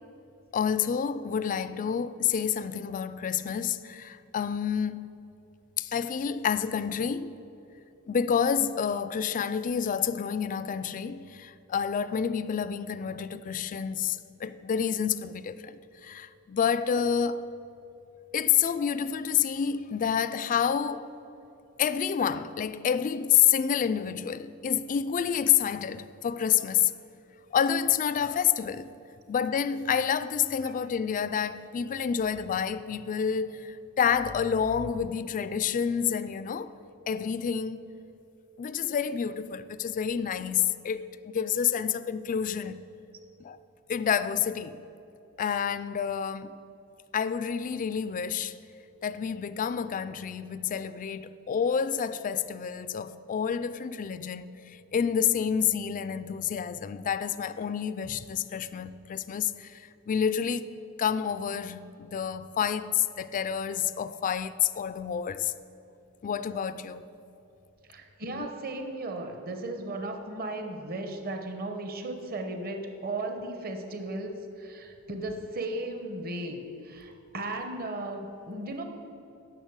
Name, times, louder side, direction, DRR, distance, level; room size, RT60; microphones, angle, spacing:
voice 1, 0.5-5.1 5.8-7.3 8.1-17.4 18.3-21.1 21.8-26.9 27.5-28.9 29.3-36.7 37.1-37.8 38.6-42.9 43.4-43.6 43.9-44.8 45.4-46.6 47.1-48.6 49.0-60.7 61.0-65.5 66.2-67.1 68.3-68.5, left 8 dB, 35° left, 0.3 m, -28 dB
voice 2, 67.9-78.8, right 2 dB, 45° right, 1.0 m, -36 dB
10.0 x 6.7 x 8.0 m
head